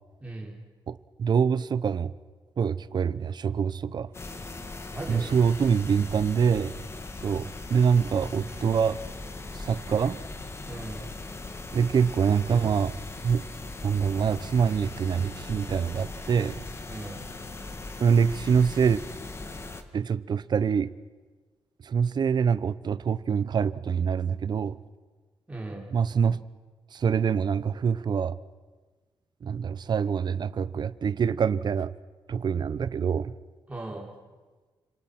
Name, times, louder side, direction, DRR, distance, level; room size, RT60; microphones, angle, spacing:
voice 1, 0.2-0.6 4.9-5.3 10.7-11.0 16.9-17.2 25.5-25.8 33.7-34.1, right 2 dB, 15° right, -2 dB, 5.2 m, -38 dB
voice 2, 0.9-2.1 2.6-4.1 5.1-6.8 7.2-9.0 9.5-10.2 11.7-13.0 13.2-13.4 13.8-16.6 18.0-19.0 19.9-20.9 21.8-24.8 25.9-26.5 26.9-28.3 29.4-31.9 32.3-33.3, right 6 dB, 50° right, 16 dB, 0.8 m, -25 dB
sound 1, 4.1-19.8, left 3 dB, 25° left, 1.8 m, -39 dB
29.5 x 26.5 x 6.0 m, 1.4 s
wide cardioid pair, 135°, 9 cm